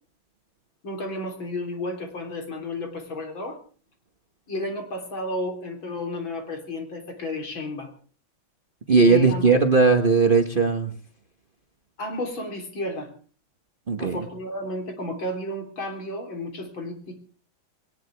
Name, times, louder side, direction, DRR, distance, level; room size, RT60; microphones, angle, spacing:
voice 1, 0.8-3.6 4.5-7.9 9.0-9.5 12.0-13.1 14.0-17.2, left 1 dB, 70° left, 3 dB, 4.3 m, -32 dB
voice 2, 8.9-10.9 13.9-14.2, right 4 dB, 30° right, 5 dB, 1.1 m, -18 dB
21.0 x 19.0 x 3.5 m, 0.41 s
omnidirectional pair, 2.2 m